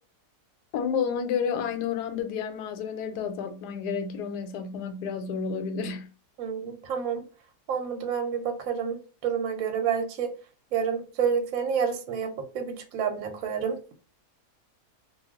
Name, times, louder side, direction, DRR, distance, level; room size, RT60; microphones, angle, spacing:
voice 1, 0.7-6.1, left 6 dB, 85° left, 1.2 m, -30 dB
voice 2, 6.4-7.2 7.7-10.3 10.7-13.8, right 7 dB, 65° right, 1.0 m, -29 dB
2.5 x 2.3 x 3.4 m
omnidirectional pair, 1.7 m